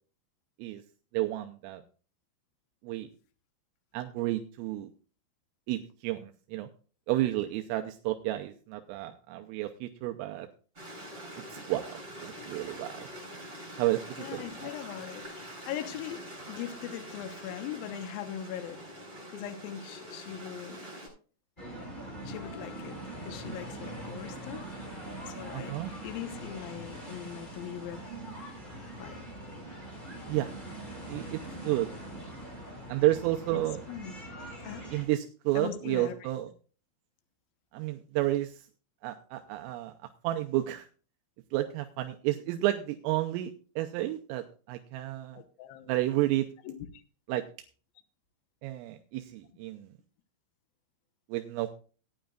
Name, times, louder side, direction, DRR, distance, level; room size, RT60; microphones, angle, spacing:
voice 1, 1.1-1.8 2.8-3.1 3.9-4.9 5.7-6.7 7.1-10.5 11.5-13.1 13.8-14.7 25.5-25.9 30.3-30.5 31.1-31.9 32.9-33.8 34.9-36.5 37.7-38.5 39.0-39.9 40.2-40.9 41.5-45.4 45.9-46.5 47.3-47.4 48.6-49.9 51.3-51.7, right 16 dB, 85° right, 5 dB, 3.3 m, -31 dB
Stream, 10.8-21.1, equal, 15° right, 7.7 m, -45 dB
voice 2, 14.2-18.8 19.3-20.8 22.2-24.8 25.3-25.8 26.0-28.0 29.0-29.3 33.5-33.6 33.9-34.1 34.6-34.9 35.5-36.1 45.3-45.9 46.6-47.0, left 10 dB, 85° left, 8 dB, 2.1 m, -40 dB
sound 1, 21.6-35.0, right 1 dB, 10° left, 3.7 m, -42 dB
17.0 x 10.5 x 2.4 m, 0.38 s
omnidirectional pair, 5.8 m